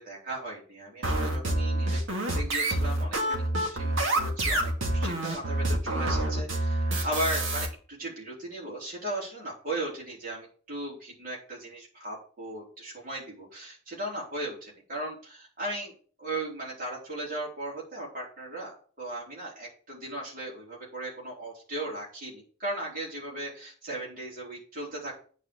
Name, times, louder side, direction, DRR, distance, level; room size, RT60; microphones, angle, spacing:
voice 1, 0.0-15.9 16.2-25.3, right 1 dB, 40° right, -5 dB, 4.1 m, -37 dB
sound 1, 1.0-7.7, right 1 dB, 65° right, 2.3 m, -27 dB
9.0 x 5.0 x 6.4 m, 0.42 s
head